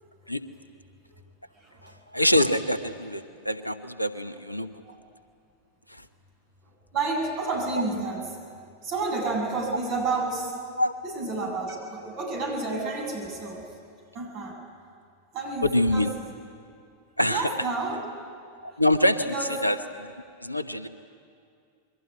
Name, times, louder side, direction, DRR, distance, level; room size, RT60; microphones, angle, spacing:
voice 1, 1.8-4.7 5.9-6.0 10.8-11.0 15.6-16.1 17.2-17.5 18.6-19.3 19.6-20.1 20.4-20.9, left 1 dB, 90° left, 11 dB, 1.1 m, -25 dB
voice 2, 6.9-8.3 8.8-10.6 11.0-13.6 14.1-14.6 15.3-16.2 17.3-18.0 18.7-18.8 19.2-19.5, right 3 dB, 45° right, 2 dB, 7.4 m, -30 dB
28.0 x 22.5 x 9.5 m, 2.4 s
figure-of-eight pair, 90°, 0 cm